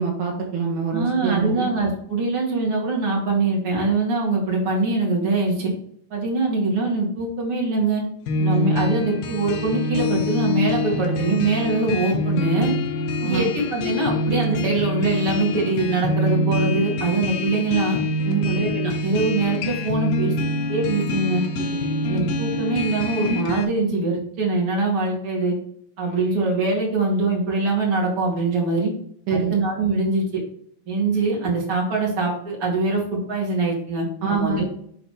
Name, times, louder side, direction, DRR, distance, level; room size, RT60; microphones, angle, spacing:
voice 1, 0.0-1.7 13.2-13.5 18.3-18.5 21.6-22.0 29.3-29.6 34.2-34.6, right 5 dB, 65° right, 0 dB, 2.3 m, -25 dB
voice 2, 0.9-5.7 6.1-8.0 8.4-12.7 13.2-18.0 18.4-20.3 20.7-21.4 22.1-25.5 26.0-28.9 29.3-30.4 30.9-34.6, right 3 dB, 40° right, -3 dB, 2.7 m, -23 dB
sound 1, 8.3-23.6, left 1 dB, 70° left, 2.4 m, -25 dB
10.5 x 3.9 x 3.2 m, 0.67 s
omnidirectional pair, 4.6 m